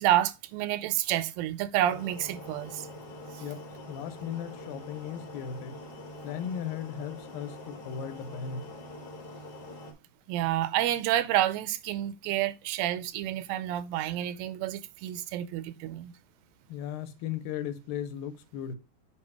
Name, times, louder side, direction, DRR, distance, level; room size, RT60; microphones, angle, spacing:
voice 1, 0.0-2.9 3.3-3.5 10.3-16.1, right 13 dB, 90° right, 2.3 m, -29 dB
sound 1, 1.8-9.9, left 1 dB, 55° left, 1.1 m, -44 dB
voice 2, 3.4-5.8 6.2-8.7 16.7-18.8, left 8 dB, 80° left, 2.5 m, -37 dB
8.4 x 2.8 x 4.7 m
omnidirectional pair, 4.0 m